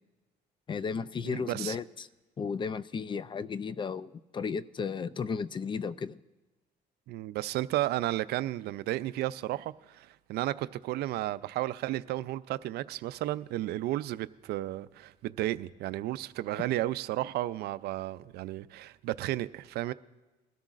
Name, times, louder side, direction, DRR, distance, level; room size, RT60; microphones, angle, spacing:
voice 1, 0.7-2.1 2.4-6.2, left 5 dB, 30° left, 0.4 m, -34 dB
voice 2, 1.2-1.8 7.1-19.9, right 15 dB, 75° right, 0.4 m, -33 dB
21.5 x 13.0 x 2.5 m
cardioid pair, 110°, 17 cm